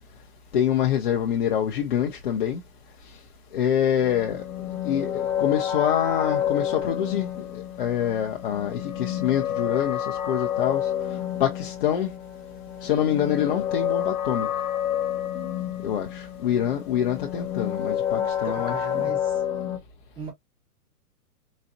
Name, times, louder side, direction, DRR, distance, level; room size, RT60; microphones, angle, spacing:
voice 1, 0.5-2.6 3.5-4.4 4.8-7.3 7.5-10.8 11.4-12.1 12.8-14.5 15.8-19.1, left 9 dB, 40° left, 0.6 m, -25 dB
sound 1, 4.0-19.8, left 10 dB, 65° left, 1.2 m, -29 dB
voice 2, 18.2-19.4 20.2-20.3, right 5 dB, 10° right, 0.7 m, -38 dB
4.1 x 2.1 x 2.6 m
hypercardioid pair, 140°, 45 cm